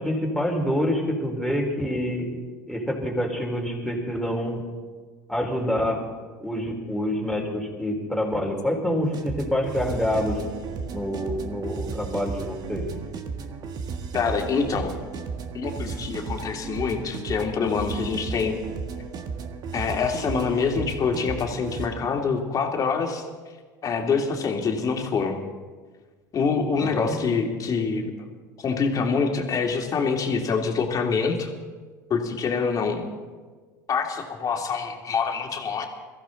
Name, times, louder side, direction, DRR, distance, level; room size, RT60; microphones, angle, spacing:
voice 1, 0.0-2.3 2.7-4.6 5.3-6.0 6.4-10.4 10.9-12.9 26.8-27.1, equal, ahead, -1 dB, 4.4 m, -27 dB
sound 1, 9.0-21.9, right 5 dB, 45° right, 1.7 m, -34 dB
voice 2, 14.1-14.9 15.5-18.6 19.7-23.2 23.8-25.4 26.3-28.1 28.6-31.5 32.1-33.1 33.9-35.9, left 5 dB, 35° left, 2 dB, 2.7 m, -25 dB
22.5 x 15.0 x 3.9 m, 1.4 s
hypercardioid pair, 80°, 10 cm